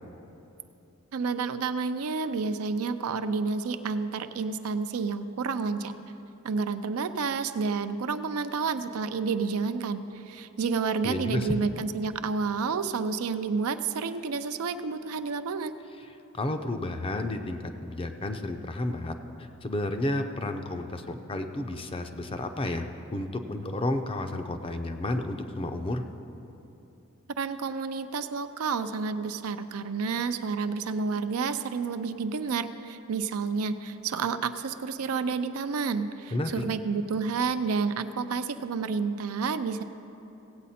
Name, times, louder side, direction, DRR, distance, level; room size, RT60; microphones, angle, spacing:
voice 1, 1.1-5.9 6.4-15.7 27.4-39.8, right 5 dB, 80° right, 10 dB, 0.5 m, -30 dB
voice 2, 11.0-11.6 16.1-26.0 36.3-36.6, left 1 dB, 25° left, 7 dB, 0.5 m, -32 dB
16.5 x 8.2 x 4.2 m, 2.9 s
head